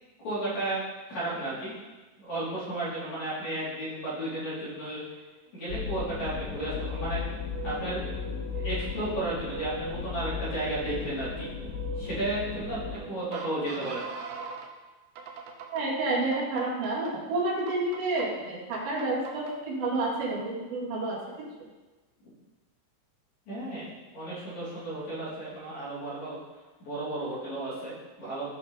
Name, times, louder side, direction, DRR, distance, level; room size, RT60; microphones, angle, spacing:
voice 1, 0.2-0.8 1.1-1.7 2.2-5.0 5.5-7.2 7.6-8.2 8.5-11.5 12.0-14.0 23.5-26.4 26.8-28.4, right 1 dB, 35° left, -10 dB, 4.0 m, -33 dB
sound 1, 5.7-13.0, left 7 dB, 80° left, 3.3 m, -36 dB
sound 2, 5.7-14.7 15.2-15.8 16.3-17.1 17.7-18.3 18.7-19.5, right 3 dB, 90° right, 2.2 m, -41 dB
voice 2, 15.7-21.2, right 2 dB, 55° right, -6 dB, 3.9 m, -29 dB
15.0 x 5.8 x 4.2 m, 1.2 s
omnidirectional pair, 5.9 m